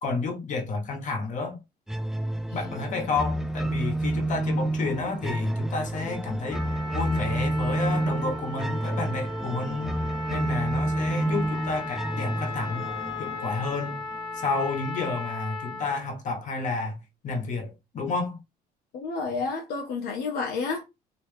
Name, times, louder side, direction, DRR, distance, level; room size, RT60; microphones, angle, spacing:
voice 1, 0.0-1.6 2.5-6.6 6.9-10.0 10.3-12.8 13.2-14.0 14.3-17.0 17.2-18.4, left 3 dB, 45° left, 1.2 m, -30 dB
sound 1, 1.9-14.9, right 1 dB, 5° right, 0.4 m, -30 dB
Trumpet, 6.5-16.0, left 2 dB, 30° left, 1.0 m, -36 dB
voice 2, 18.9-20.8, left 4 dB, 70° left, 0.8 m, -30 dB
3.1 x 3.0 x 3.4 m
cardioid pair, 110°, 17 cm